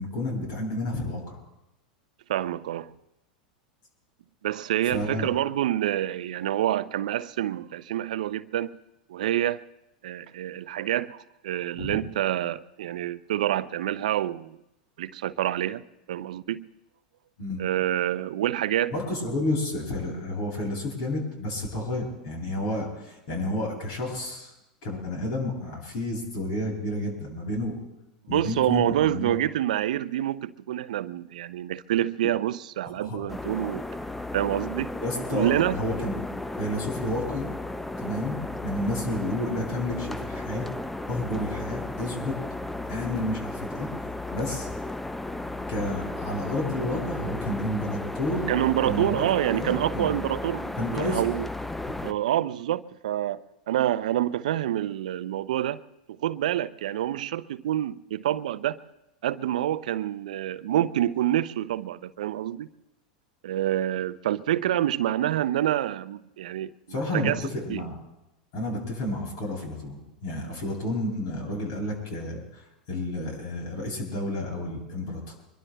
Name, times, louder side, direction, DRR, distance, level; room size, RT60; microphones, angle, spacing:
voice 1, 0.0-1.4 4.9-5.3 11.8-12.0 17.4-17.6 18.9-24.5 24.8-27.7 28.3-29.4 32.8-33.2 35.0-36.1 36.5-37.5 38.0-40.7 41.1-42.4 42.9-43.9 44.3-44.7 45.7-48.5 48.8-49.2 49.5-50.1 50.8-51.2 52.0-52.1 66.9-68.0 68.5-75.3, left 1 dB, 55° left, 7.9 m, -31 dB
voice 2, 2.3-2.9 4.4-8.8 9.1-9.6 10.0-14.6 15.0-15.8 16.1-16.7 17.6-18.9 28.3-33.9 34.3-34.9 35.3-35.8 48.5-51.5 52.0-55.8 56.1-58.8 59.2-62.7 63.4-67.8, right 12 dB, 70° right, 0.5 m, -27 dB
winter wind in trees, 33.3-52.1, left 2 dB, 5° left, 0.5 m, -34 dB
25.0 x 22.5 x 2.3 m
hypercardioid pair, 95°, 4 cm